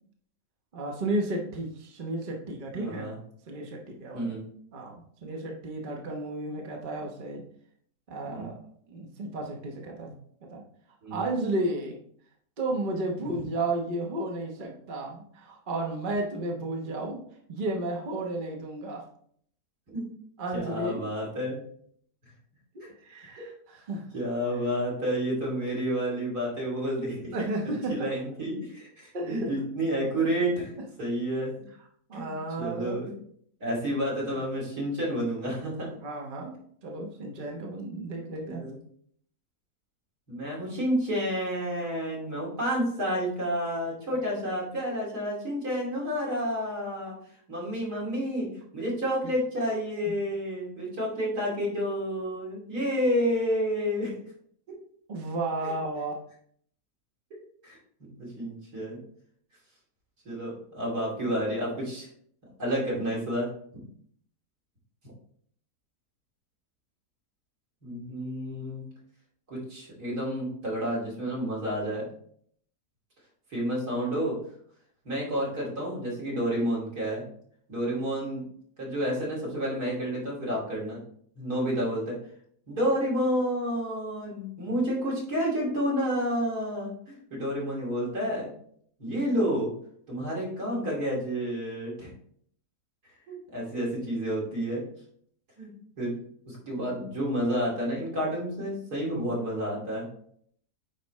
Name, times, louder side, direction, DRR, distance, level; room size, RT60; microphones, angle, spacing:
voice 1, 0.7-3.1 3.5-4.3 4.7-7.4 8.1-8.6 8.9-10.2 10.5-10.6 11.1-12.0 12.6-17.2 17.5-19.0 20.4-21.0 22.7-24.0 27.3-27.9 29.1-29.5 32.1-33.0 36.0-36.5 36.8-38.6 50.1-50.2 55.1-56.1, right 2 dB, 35° right, 0 dB, 1.0 m, -33 dB
voice 2, 2.7-3.2 4.1-4.4 8.3-8.5 11.0-11.2 19.9-20.0 20.5-21.6 22.8-22.9 23.4-23.5 24.1-27.3 27.9-30.7 31.0-31.5 32.1-33.1 33.6-35.9 38.4-38.8 40.3-47.1 47.5-54.2 55.6-55.7 57.6-59.0 60.2-62.1 62.6-63.5 67.8-68.8 69.5-72.1 73.5-74.4 75.0-77.2 77.7-78.4 78.8-81.0 81.3-82.1 82.7-88.5 89.0-89.7 90.1-92.1 93.3-94.8 95.6-95.7 96.0-96.2 96.5-100.1, equal, 75° right, -4 dB, 3.1 m, -30 dB
9.0 x 4.3 x 3.1 m, 0.63 s
omnidirectional pair, 1.7 m